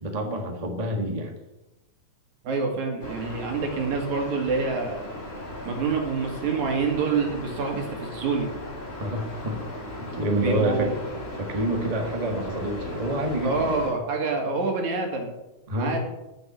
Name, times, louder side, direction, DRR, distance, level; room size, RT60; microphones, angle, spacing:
voice 1, 0.0-1.3 9.0-9.6 10.0-13.7 15.7-16.0, right 1 dB, 20° right, 2 dB, 0.9 m, -28 dB
voice 2, 2.4-5.0 5.6-8.5 10.4-11.0 13.4-15.3 15.8-16.0, right 4 dB, 70° right, 2 dB, 3.3 m, -27 dB
sound 1, 3.0-13.9, left 1 dB, 20° left, 2.7 m, -37 dB
9.1 x 7.7 x 7.5 m, 0.95 s
omnidirectional pair, 3.5 m